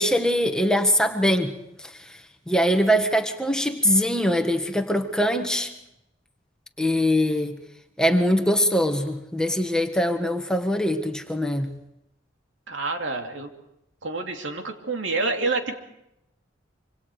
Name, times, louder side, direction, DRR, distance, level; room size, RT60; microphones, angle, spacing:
voice 1, 0.0-1.5 1.8-2.1 2.5-5.7 6.8-7.6 8.0-11.7, equal, 5° left, 5 dB, 1.5 m, -22 dB
voice 2, 12.7-13.5 14.0-15.8, right 3 dB, 85° right, 3 dB, 2.7 m, -28 dB
26.0 x 25.5 x 4.9 m, 0.83 s
head